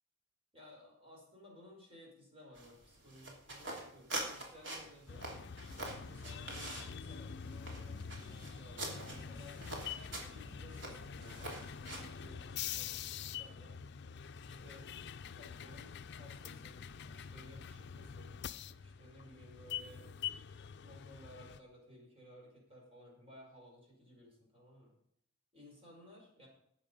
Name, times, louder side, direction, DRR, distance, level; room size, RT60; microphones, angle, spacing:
voice 1, 0.5-5.3 6.0-9.6 10.1-13.8 14.5-14.9 15.3-18.4 18.8-20.4 20.8-24.9 25.5-26.5, left 1 dB, 30° right, -2 dB, 5.1 m, -58 dB
sound 1, 2.5-12.2, right 1 dB, 60° right, 3.1 m, -45 dB
sound 2, 5.1-21.6, left 8 dB, 55° left, 0.5 m, -46 dB
sound 3, 5.7-13.0, equal, 45° right, 4.5 m, -59 dB
12.5 x 8.3 x 5.4 m, 0.71 s
head